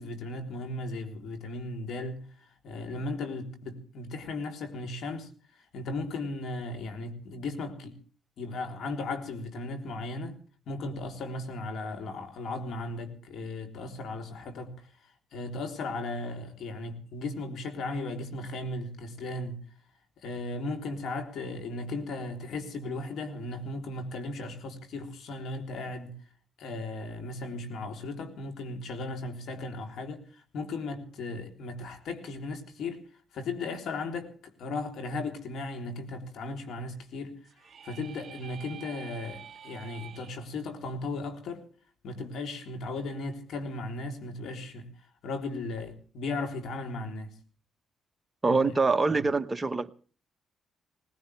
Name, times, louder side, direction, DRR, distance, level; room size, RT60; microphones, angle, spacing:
voice 1, 0.0-2.3 2.6-5.3 5.7-8.0 8.4-10.4 10.7-14.9 15.3-19.6 20.2-26.2 26.6-33.0 33.3-37.4 37.8-41.7 42.0-44.9 45.2-47.4 48.5-48.8 49.1-49.2, left 2 dB, 70° left, 3.6 m, -36 dB
sound 1, 37.4-40.4, right 8 dB, 45° right, 3.2 m, -47 dB
voice 2, 48.4-49.9, right 3 dB, 25° right, 1.2 m, -25 dB
20.5 x 19.5 x 3.4 m
cardioid pair, 90°, 0 cm